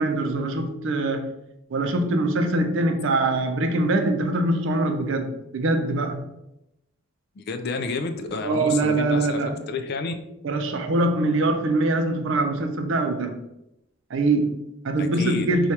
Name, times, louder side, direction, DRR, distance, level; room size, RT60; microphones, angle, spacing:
voice 1, 0.0-1.3 1.7-6.3 8.4-9.6 10.4-13.4 14.1-15.7, right 2 dB, 60° right, 5 dB, 0.5 m, -23 dB
voice 2, 7.4-9.4 9.7-10.1 15.0-15.5, left 4 dB, 50° left, 7 dB, 0.3 m, -30 dB
4.5 x 2.3 x 2.8 m, 0.86 s
head